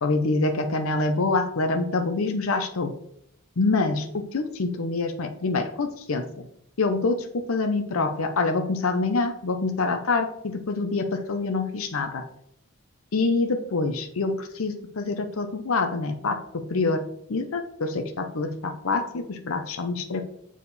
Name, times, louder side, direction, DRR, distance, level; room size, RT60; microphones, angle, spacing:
voice 1, 0.0-2.9 3.6-6.5 6.8-12.2 13.1-20.2, left 3 dB, 75° left, 5 dB, 0.7 m, -26 dB
7.2 x 4.9 x 4.1 m, 0.72 s
head